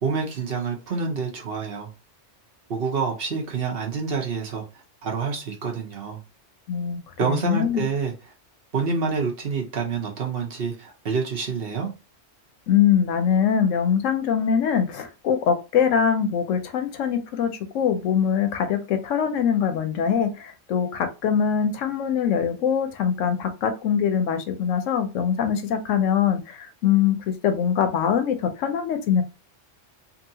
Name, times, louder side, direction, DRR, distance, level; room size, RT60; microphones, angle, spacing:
voice 1, 0.0-1.9 2.7-4.6 5.0-6.2 7.2-8.1 8.7-11.9, right 5 dB, 55° right, 1.0 m, -27 dB
voice 2, 6.7-7.8 12.7-29.2, left 8 dB, 85° left, 1.0 m, -23 dB
2.8 x 2.7 x 2.7 m
omnidirectional pair, 1.3 m